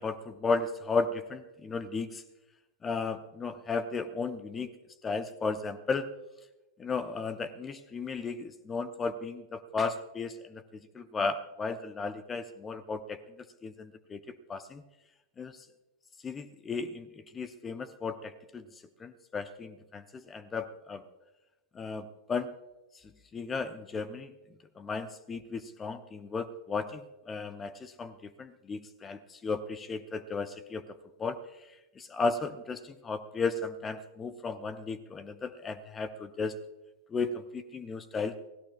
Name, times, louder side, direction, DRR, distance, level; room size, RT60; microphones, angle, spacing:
voice 1, 0.0-2.2 2.8-4.7 5.0-6.1 6.8-14.8 15.4-15.7 16.2-18.7 19.0-21.0 21.7-22.5 23.3-24.3 24.8-36.5 37.1-38.4, left 4 dB, 20° left, 13 dB, 0.7 m, -35 dB
29.0 x 17.0 x 2.4 m, 1.1 s
figure-of-eight pair, 90°, 0 cm